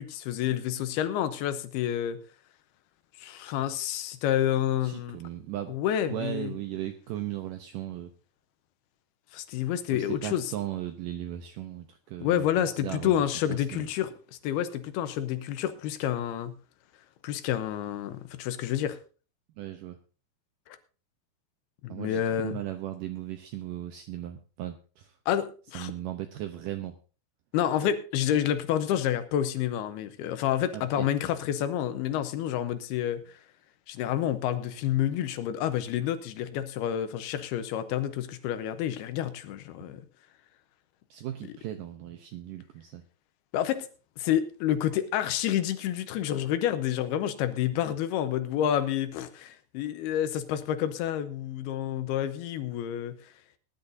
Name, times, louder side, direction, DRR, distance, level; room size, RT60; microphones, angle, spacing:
voice 1, 0.0-2.2 3.2-5.2 5.7-6.5 9.3-10.5 12.2-16.5 17.2-19.0 20.7-20.8 21.8-22.6 25.3-25.9 27.5-33.4 33.9-40.0 43.5-43.9 44.2-53.1, left 10 dB, 75° left, 11 dB, 2.7 m, -29 dB
voice 2, 4.8-5.7 6.1-8.1 9.9-13.2 13.5-13.9 19.6-20.0 21.9-25.1 25.7-27.0 30.7-31.1 41.1-43.0, right 12 dB, 80° right, 7 dB, 2.0 m, -37 dB
20.0 x 10.5 x 2.6 m, 0.36 s
omnidirectional pair, 4.7 m